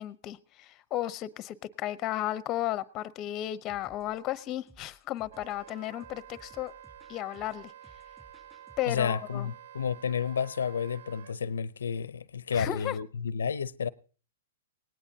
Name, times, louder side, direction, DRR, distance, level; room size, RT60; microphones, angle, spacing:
voice 1, 0.0-6.7 7.1-7.7 8.8-9.5 12.5-12.9, left 13 dB, 30° left, 0.7 m, -34 dB
sound 1, 3.7-9.0, right 1 dB, 10° right, 2.9 m, -59 dB
Wind instrument woodwind instrument, 5.3-11.3, right 10 dB, 65° right, 0.6 m, -50 dB
voice 2, 8.9-13.9, left 6 dB, 90° left, 0.6 m, -31 dB
18.5 x 18.0 x 2.8 m
hypercardioid pair, 135°, 0 cm